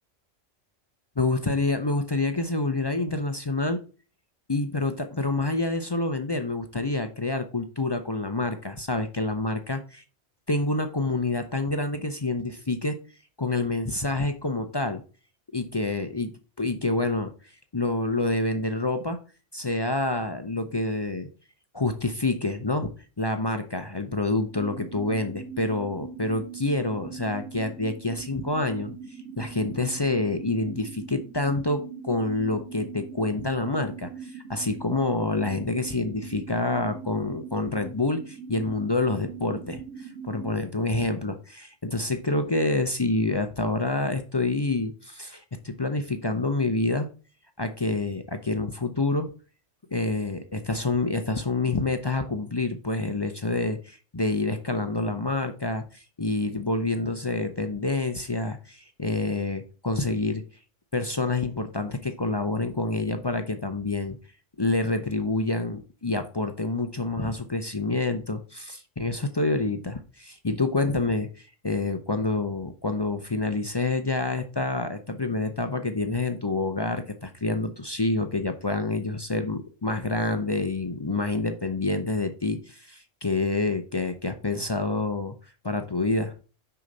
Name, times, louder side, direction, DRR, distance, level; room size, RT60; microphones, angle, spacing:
voice 1, 1.2-3.8 4.5-10.0 10.5-13.0 13.4-15.0 15.5-17.3 17.7-19.2 19.5-21.3 21.7-22.9 23.2-28.9 29.4-47.1 47.6-49.3 49.9-60.4 60.9-64.2 64.6-85.3 85.6-86.3, left 2 dB, 30° left, 7 dB, 0.5 m, -27 dB
sound 1, 24.5-40.5, right 6 dB, 80° right, 2.4 m, -41 dB
6.3 x 5.8 x 3.9 m, 0.36 s
omnidirectional pair, 1.3 m